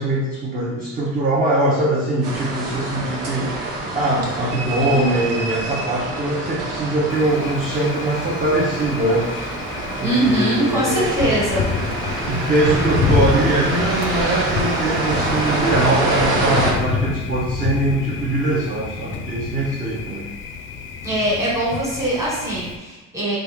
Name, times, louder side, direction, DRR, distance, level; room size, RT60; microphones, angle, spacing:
voice 1, 0.0-9.3 10.0-11.4 12.2-20.3, right 2 dB, 30° right, -4 dB, 0.6 m, -22 dB
sound 1, 2.2-16.7, right 2 dB, 90° right, 0.8 m, -26 dB
Thunder, 7.1-22.8, left 5 dB, 45° left, 0.4 m, -28 dB
voice 2, 10.0-11.7 21.0-23.4, right 1 dB, 10° right, -6 dB, 1.3 m, -22 dB
3.1 x 2.3 x 3.4 m, 1.1 s
cardioid pair, 115°, 30 cm